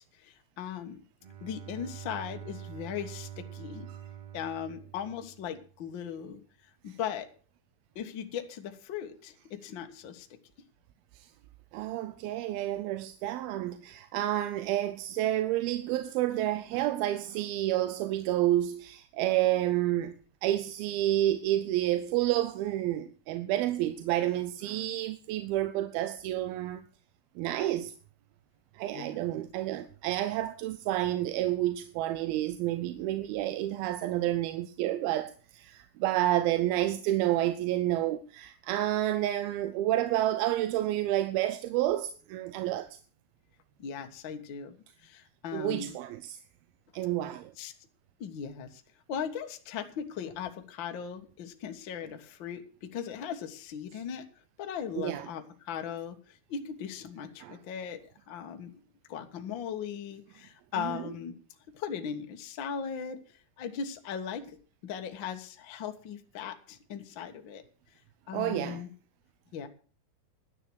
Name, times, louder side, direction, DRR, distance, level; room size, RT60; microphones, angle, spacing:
voice 1, 0.2-1.0 1.4-3.9 4.3-6.4 6.8-7.3 7.9-10.3 28.9-29.2 43.8-45.9 47.6-47.7 48.2-48.8 49.1-54.3 54.6-58.0 58.3-58.7 59.1-61.4 61.7-63.2 63.6-64.6 64.8-67.6 68.3-68.9 69.5-69.7, left 8 dB, 65° left, 1.2 m, -38 dB
Bowed string instrument, 1.2-5.9, right 10 dB, 50° right, 2.4 m, -45 dB
voice 2, 11.7-26.8 27.4-27.9 28.7-42.9 45.5-46.4 46.9-47.5 55.0-55.3 57.4-57.6 60.8-61.0 68.3-68.8, right 14 dB, 90° right, 2.6 m, -30 dB
12.0 x 9.9 x 6.2 m
omnidirectional pair, 4.2 m